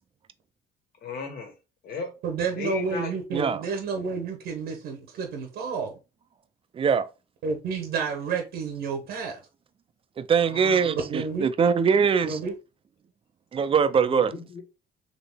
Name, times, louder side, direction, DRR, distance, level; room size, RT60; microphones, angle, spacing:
voice 1, 1.0-1.5 1.8-2.1 2.6-3.1 10.5-10.9 14.0-14.6, left 4 dB, 65° left, 1.6 m, -35 dB
voice 2, 2.2-6.0 7.4-9.4 11.1-11.5 12.2-12.5, right 5 dB, 80° right, 1.1 m, -30 dB
voice 3, 6.7-7.1 10.2-12.4 13.5-14.3, right 6 dB, 35° right, 0.5 m, -22 dB
4.0 x 3.2 x 3.5 m
cardioid pair, 110°, 17 cm